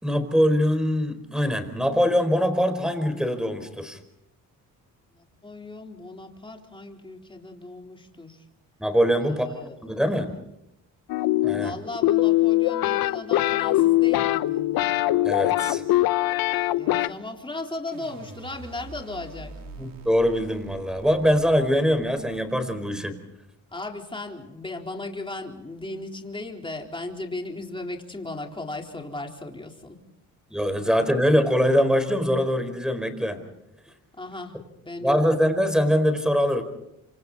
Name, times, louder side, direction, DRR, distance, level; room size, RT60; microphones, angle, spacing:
voice 1, 0.0-4.0 8.8-10.3 11.4-11.7 15.2-15.8 19.8-23.2 30.5-33.4 35.0-36.6, equal, ahead, 9 dB, 4.6 m, -23 dB
voice 2, 5.1-8.4 9.2-10.2 11.5-14.6 16.8-19.6 23.7-30.0 30.8-30.9 34.1-34.6 34.8-35.4, left 2 dB, 15° left, 2 dB, 4.0 m, -37 dB
sound 1, 11.1-17.1, left 16 dB, 80° left, 0.9 m, -22 dB
sound 2, 17.9-23.0, right 3 dB, 70° right, 4.4 m, -44 dB
28.0 x 26.5 x 4.2 m, 0.85 s
cardioid pair, 80°, 35 cm